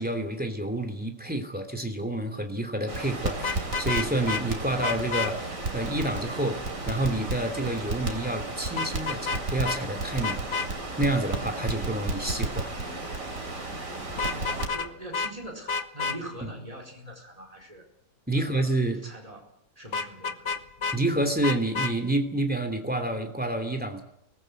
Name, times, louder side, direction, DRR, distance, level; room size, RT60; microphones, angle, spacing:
voice 1, 0.0-6.6 6.9-10.4 11.0-12.7 16.4-16.5 18.3-19.0 20.9-24.0, right 1 dB, 5° right, 6 dB, 2.8 m, -28 dB
Crackle, 2.9-14.7, right 2 dB, 50° right, 3.5 m, -33 dB
Vehicle horn car horn honking, 3.4-4.4 4.8-5.3 8.8-9.4 9.6-9.8 10.2-10.7 14.1-14.9 15.1-15.3 15.7-16.2 19.9-21.0 21.4-21.9, left 5 dB, 45° left, 1.5 m, -29 dB
voice 2, 14.3-17.8 18.3-19.5 19.8-20.4, right 1 dB, 20° right, 1 dB, 4.8 m, -42 dB
24.0 x 19.5 x 8.0 m, 0.77 s
omnidirectional pair, 1.8 m